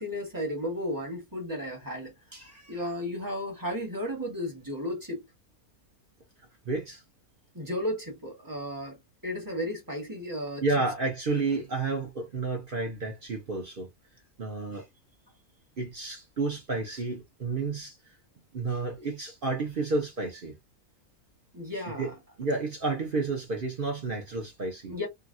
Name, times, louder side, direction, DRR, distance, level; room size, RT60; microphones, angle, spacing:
voice 1, 0.0-2.1 2.7-5.2 7.5-9.0 9.2-10.6 21.5-22.1 24.9-25.1, left 1 dB, 15° right, 1.3 m, -34 dB
voice 2, 2.3-2.9 6.6-7.0 10.6-13.9 14.4-14.9 15.8-18.0 18.5-20.5 22.0-22.1 22.4-25.0, right 3 dB, 45° right, 0.9 m, -31 dB
2.8 x 2.5 x 2.6 m
omnidirectional pair, 1.5 m